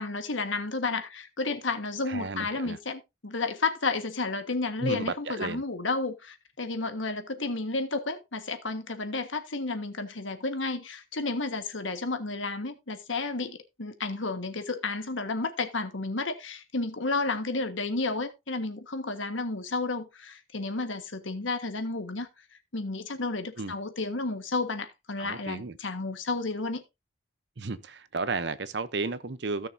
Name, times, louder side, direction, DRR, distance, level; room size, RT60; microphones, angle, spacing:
voice 1, 0.0-22.3 22.7-26.8, left 3 dB, 75° left, 1.6 m, -32 dB
voice 2, 2.1-2.8 4.8-5.6 23.6-23.7 25.2-25.8 27.6-29.7, right 3 dB, 60° right, 0.8 m, -33 dB
16.0 x 6.6 x 2.7 m
head